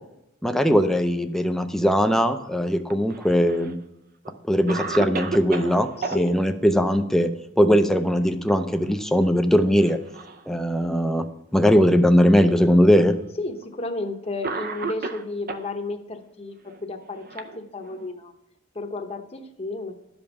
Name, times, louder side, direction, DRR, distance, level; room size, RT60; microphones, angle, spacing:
voice 1, 0.4-3.7 4.5-7.3 7.6-10.0 10.5-11.3 11.5-13.2, equal, ahead, 7 dB, 0.5 m, -20 dB
Cough, 2.9-3.7 4.3-4.4 4.7-6.2 8.1-8.5 8.8-9.0 9.8-10.5 11.3-11.4 12.4-12.5 13.6-13.8 14.4-15.7 16.7-18.1, right 4 dB, 45° right, 0.6 m, -33 dB
voice 2, 6.0-6.4 13.4-16.6 16.8-18.3 18.7-20.0, left 2 dB, 30° left, 6 dB, 0.9 m, -32 dB
11.5 x 5.3 x 5.9 m, 0.88 s
head